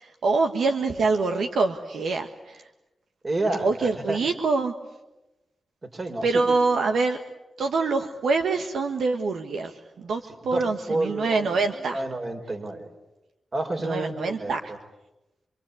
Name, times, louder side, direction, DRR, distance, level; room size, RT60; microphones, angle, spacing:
voice 1, 0.0-2.6 3.6-4.7 6.2-7.2 7.6-12.0 13.8-14.7, right 3 dB, 80° right, 5 dB, 1.5 m, -25 dB
voice 2, 3.2-4.2 5.9-6.5 10.2-11.5 11.7-12.9 13.5-14.8, right 2 dB, 45° right, 4 dB, 5.2 m, -30 dB
26.5 x 24.5 x 8.6 m, 1.0 s
cardioid pair, 50°, 0 cm